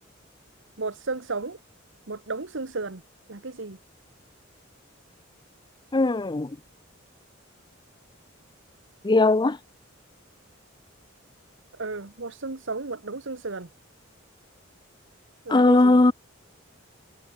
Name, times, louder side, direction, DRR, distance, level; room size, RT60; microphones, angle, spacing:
voice 1, 0.8-1.6 2.1-3.0 3.3-3.8 11.8-13.7 15.4-16.0, right 3 dB, 65° right, 1.4 m, -33 dB
voice 2, 5.9-6.5 9.0-9.6 15.5-16.1, left 2 dB, 20° left, 0.5 m, -18 dB
head